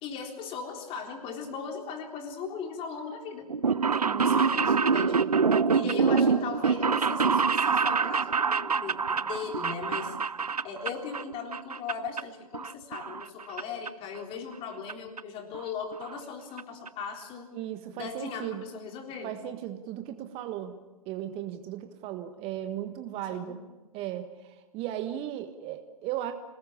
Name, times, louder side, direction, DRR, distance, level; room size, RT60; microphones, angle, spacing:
voice 1, 0.0-3.5 4.2-5.2 5.7-10.1 10.6-17.5 17.9-19.4 23.3-23.6, left 6 dB, 30° left, 3 dB, 3.8 m, -38 dB
sound 1, 3.5-11.2 11.5-12.2 12.5-13.6 13.9-14.0 14.9-15.0 15.2-15.3 15.5-15.6 15.9-16.2 16.6-16.7 16.9-17.0, right 5 dB, 80° right, 0.7 m, -26 dB
voice 2, 3.9-4.3 5.5-6.1 17.5-18.6 19.2-20.8 21.0-23.6 23.9-26.3, right 12 dB, 30° right, 8 dB, 1.4 m, -36 dB
26.0 x 19.5 x 7.1 m, 1.1 s
figure-of-eight pair, 115°, 19 cm